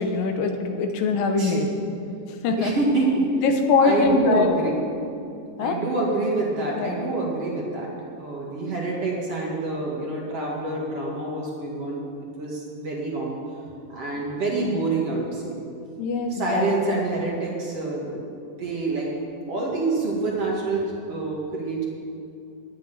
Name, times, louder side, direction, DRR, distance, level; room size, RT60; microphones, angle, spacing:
voice 1, 0.0-1.7 2.3-2.8 3.4-4.5 5.6-5.8 6.8-7.0 16.0-16.7, left 4 dB, 80° left, 5 dB, 2.7 m, -22 dB
voice 2, 2.6-3.2 3.8-4.8 5.6-7.9 8.2-12.0 12.4-13.4 13.9-15.6 16.3-19.1 19.5-21.8, right 3 dB, 45° right, -4 dB, 3.0 m, -27 dB
11.5 x 7.9 x 9.5 m, 2.6 s
omnidirectional pair, 4.1 m